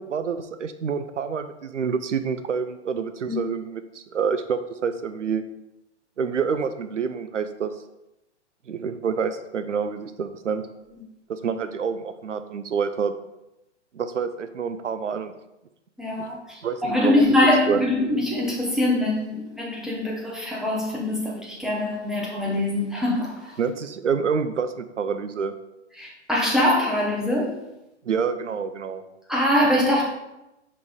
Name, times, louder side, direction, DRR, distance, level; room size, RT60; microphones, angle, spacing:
voice 1, 0.0-5.4 6.2-7.7 8.7-10.6 11.3-13.1 13.9-15.3 16.6-17.4 17.7-17.9 23.6-25.5 28.0-29.0, right 6 dB, 85° right, 10 dB, 0.6 m, -27 dB
voice 2, 16.0-23.6 26.0-27.6 29.3-30.1, left 1 dB, ahead, -4 dB, 0.8 m, -23 dB
6.6 x 5.3 x 3.6 m, 0.92 s
figure-of-eight pair, 125°, 36 cm